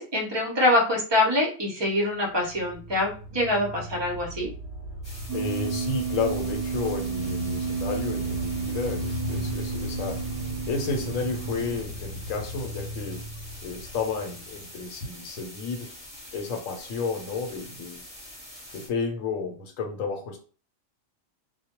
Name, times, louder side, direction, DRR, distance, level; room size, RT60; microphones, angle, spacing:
voice 1, 0.0-4.5, left 1 dB, 30° right, -1 dB, 0.5 m, -24 dB
sound 1, 2.1-14.9, equal, 60° left, 0.9 m, -36 dB
sound 2, 5.0-18.9, left 1 dB, 25° left, 0.8 m, -45 dB
voice 2, 5.3-10.2 10.7-13.3 13.6-15.9 16.3-18.0 18.7-20.4, left 4 dB, 90° left, 3 dB, 1.0 m, -32 dB
sound 3, 5.3-11.8, right 6 dB, 80° right, 0.9 m, -32 dB
2.2 x 2.1 x 2.8 m, 0.38 s
omnidirectional pair, 1.3 m